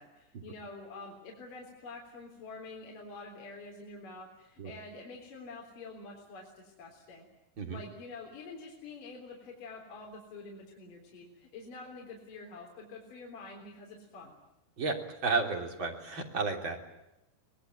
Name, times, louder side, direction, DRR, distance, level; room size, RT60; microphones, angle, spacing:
voice 1, 0.0-7.2 7.7-14.3, left 3 dB, 50° left, -1 dB, 5.1 m, -47 dB
voice 2, 15.2-16.8, right 4 dB, 30° right, 2 dB, 3.5 m, -32 dB
24.5 x 20.5 x 9.3 m, 0.90 s
omnidirectional pair, 4.9 m